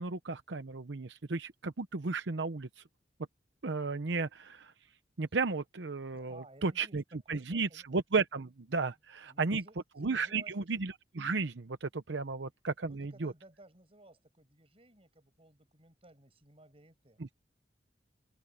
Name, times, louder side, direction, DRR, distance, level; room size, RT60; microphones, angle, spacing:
voice 1, 0.0-2.8 3.6-4.7 5.2-9.6 10.0-13.3 17.2-17.3, right 4 dB, 80° right, 0.8 m, -34 dB
voice 2, 6.1-7.8 9.3-10.6 12.3-12.4 12.8-17.3, right 1 dB, 30° right, 7.5 m, -58 dB
open air
head